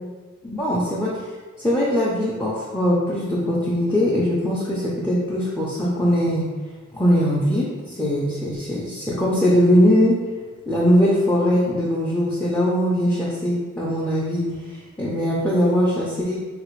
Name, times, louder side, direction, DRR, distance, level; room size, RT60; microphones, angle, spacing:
voice 1, 0.4-1.3 1.6-6.5 6.9-10.2 10.7-16.4, equal, 10° left, -6 dB, 0.3 m, -21 dB
3.3 x 2.4 x 3.0 m, 1.4 s
head